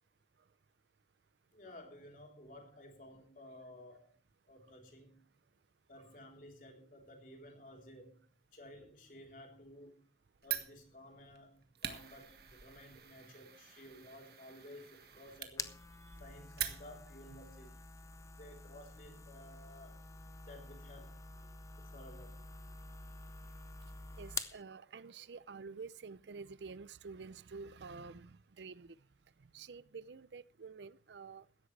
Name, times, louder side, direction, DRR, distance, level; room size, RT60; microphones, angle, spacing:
voice 1, 1.5-4.1 4.5-5.3 5.9-8.2 8.5-10.1 10.4-15.8 16.2-17.7 18.4-20.0 20.5-21.2 21.8-22.4, left 1 dB, 50° left, 3.7 m, -55 dB
Fire, 10.4-17.2, right 10 dB, 60° right, 1.6 m, -45 dB
sound 1, 15.0-24.6, left 4 dB, 20° left, 0.7 m, -48 dB
voice 2, 24.2-29.0 29.5-31.4, right 4 dB, 85° right, 0.5 m, -49 dB
16.5 x 13.0 x 3.3 m
head